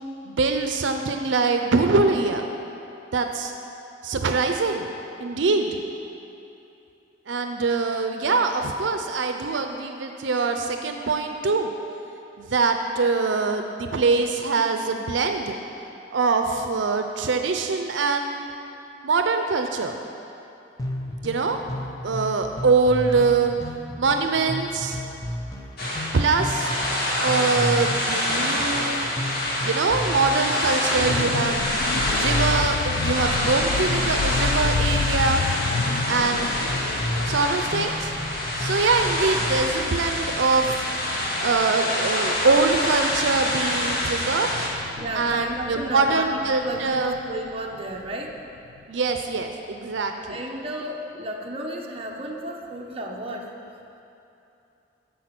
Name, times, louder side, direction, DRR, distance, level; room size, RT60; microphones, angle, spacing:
voice 1, 0.3-2.5 3.1-3.5 4.0-4.9 5.2-5.8 7.3-11.7 12.4-15.6 16.1-18.5 19.0-20.0 21.2-21.6 22.0-23.5 24.0-25.0 26.1-26.8 27.2-29.1 29.6-31.6 32.1-35.4 36.0-36.5 37.2-38.1 38.6-40.8 41.4-44.5 45.1-47.2 48.9-50.4, right 4 dB, 80° right, 5 dB, 0.6 m, -23 dB
sound 1, 20.8-39.6, left 1 dB, 20° left, 0.8 m, -33 dB
Ocean Drum Rolling Felt A, 25.8-44.7, left 1 dB, 60° left, 1.8 m, -26 dB
sound 2, 31.0-48.8 49.2-49.4, left 5 dB, 75° left, 0.3 m, -32 dB
voice 2, 45.0-48.3 50.3-53.5, right 1 dB, 30° right, -1 dB, 1.0 m, -32 dB
10.5 x 6.9 x 5.9 m, 2.8 s
head